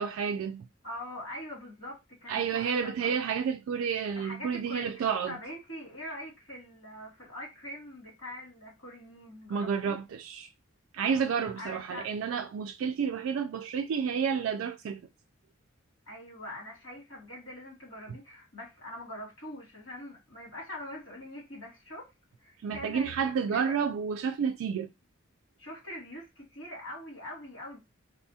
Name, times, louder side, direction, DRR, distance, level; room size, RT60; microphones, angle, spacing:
voice 1, 0.0-0.7 2.3-5.4 9.5-10.5 10.9-15.0 22.6-24.9, right 6 dB, 80° right, 0.3 m, -30 dB
voice 2, 0.8-3.2 4.2-10.0 11.6-12.1 16.1-22.1 22.4-23.7 25.6-27.8, left 1 dB, 85° left, 2.3 m, -43 dB
4.1 x 2.3 x 2.7 m
head